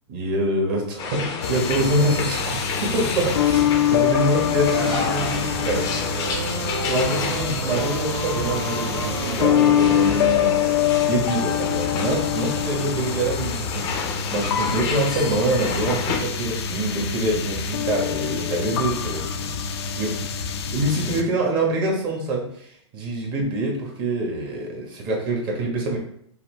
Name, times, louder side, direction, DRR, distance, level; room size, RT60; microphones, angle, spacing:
voice 1, 0.1-5.9 6.9-13.9 14.3-19.5 19.9-20.1 20.7-26.0, right 1 dB, 30° right, -1 dB, 1.4 m, -25 dB
sound 1, 1.0-16.2, left 5 dB, 25° left, 0.7 m, -31 dB
sound 2, 1.4-21.2, left 9 dB, 60° left, 0.6 m, -25 dB
sound 3, 4.3-10.9, right 3 dB, 60° right, 1.1 m, -31 dB
5.6 x 2.3 x 3.3 m, 0.67 s
hypercardioid pair, 140°, 15 cm